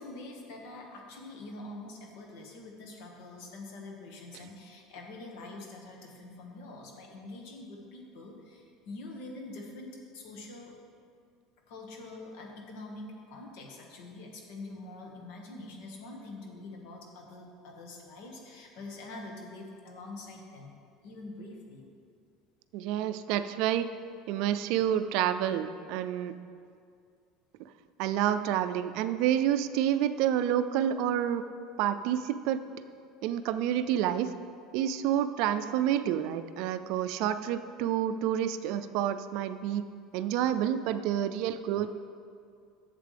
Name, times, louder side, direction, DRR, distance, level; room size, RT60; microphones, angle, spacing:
voice 1, 0.0-10.7 11.7-20.7 21.0-21.9, left 2 dB, 70° left, 0 dB, 1.7 m, -45 dB
voice 2, 22.7-23.9 24.3-26.3 28.0-31.4 31.8-32.6 33.2-34.3 34.7-39.8 40.1-41.9, right 10 dB, 65° right, 11 dB, 0.4 m, -29 dB
11.5 x 7.4 x 3.4 m, 2.3 s
cardioid pair, 150°, 0 cm